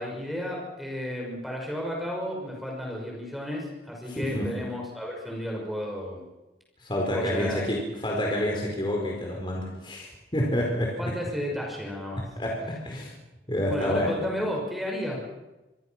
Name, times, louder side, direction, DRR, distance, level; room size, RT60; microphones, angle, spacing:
voice 1, 0.0-6.2 7.1-7.7 11.0-12.2 13.7-15.2, equal, ahead, -1 dB, 6.1 m, -32 dB
voice 2, 4.1-4.6 6.8-11.2 12.2-13.1 13.5-14.1, left 1 dB, 25° left, -1 dB, 4.6 m, -28 dB
26.0 x 23.0 x 6.1 m, 1.1 s
head